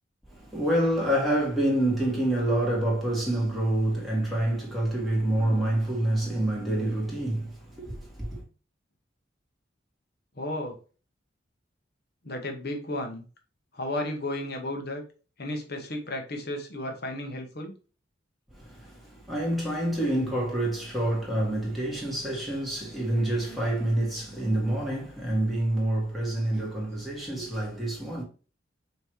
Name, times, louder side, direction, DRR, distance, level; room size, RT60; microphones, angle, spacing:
voice 1, 0.3-8.4 18.5-28.2, right 1 dB, ahead, 1.9 m, -27 dB
voice 2, 10.4-10.8 12.2-13.2 13.7-15.0 15.4-17.7, left 1 dB, 55° left, 1.1 m, -33 dB
5.6 x 3.1 x 3.0 m
head